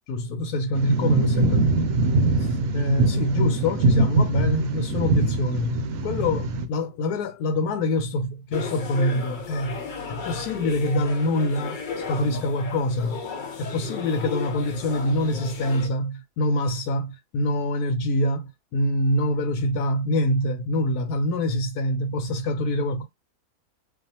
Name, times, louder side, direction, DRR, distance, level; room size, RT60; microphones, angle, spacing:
voice 1, 0.1-1.9 2.4-2.5 2.7-5.8 6.0-13.2 13.6-23.0, left 1 dB, 85° left, 1.1 m, -25 dB
sound 1, 0.7-6.7, right 2 dB, 70° right, 1.0 m, -22 dB
sound 2, 8.5-15.9, left 5 dB, 65° left, 0.4 m, -35 dB
2.5 x 2.4 x 2.7 m
omnidirectional pair, 1.6 m